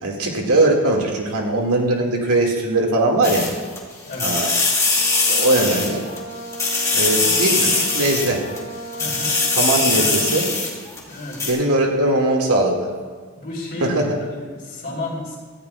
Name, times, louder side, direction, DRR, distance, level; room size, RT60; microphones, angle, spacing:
voice 1, 0.0-3.5 4.2-4.5 5.3-6.0 6.9-8.5 9.6-10.5 11.4-12.9 13.8-14.1, right 2 dB, 85° right, 1 dB, 2.1 m, -20 dB
sound 1, 3.2-3.8 4.1-6.2 6.5-8.6 8.9-11.0 11.3-11.5, left 3 dB, 15° left, 2.3 m, -21 dB
voice 2, 4.1-4.4 7.2-7.9 9.0-9.4 9.9-10.3 11.1-11.5 13.4-15.4, left 2 dB, 45° left, -3 dB, 3.7 m, -32 dB
Brass instrument, 4.8-10.7, right 1 dB, 45° right, 4.0 m, -35 dB
17.5 x 14.0 x 2.4 m, 1.5 s
head